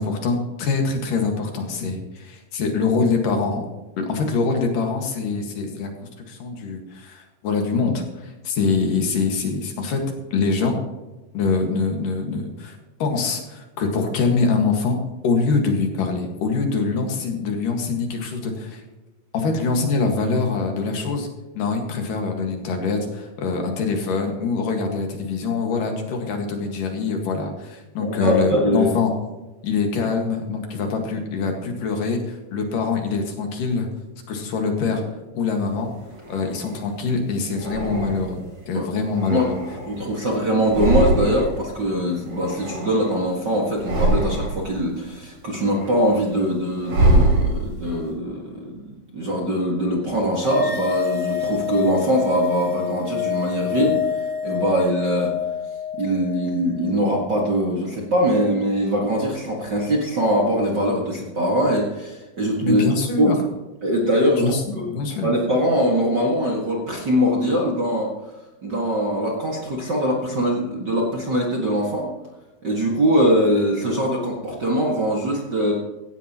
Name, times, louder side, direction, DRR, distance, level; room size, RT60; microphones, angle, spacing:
voice 1, 0.0-3.7 4.0-5.9 6.3-10.0 10.3-10.8 11.3-15.0 15.2-18.8 19.3-21.3 21.6-29.1 29.6-33.9 34.3-35.0 35.3-35.9 36.3-38.4 38.7-39.5 62.6-63.4 64.4-65.3, left 4 dB, 65° left, 3 dB, 3.3 m, -24 dB
voice 2, 28.0-28.9 38.7-38.9 39.3-39.5 39.9-54.0 54.4-55.3 55.9-62.8 63.2-63.3 63.8-64.9 65.2-68.1 68.6-72.1 72.6-75.7, equal, 35° right, -2 dB, 1.9 m, -22 dB
sound 1, 35.6-36.9 37.5-38.5 39.0-40.2 40.5-41.6 41.9-43.3 43.7-44.7 45.2-47.9, right 1 dB, 55° right, 4.8 m, -24 dB
sound 2, 50.4-57.0, left 9 dB, 15° left, 2.4 m, -27 dB
16.5 x 15.5 x 3.0 m, 1.1 s
omnidirectional pair, 4.2 m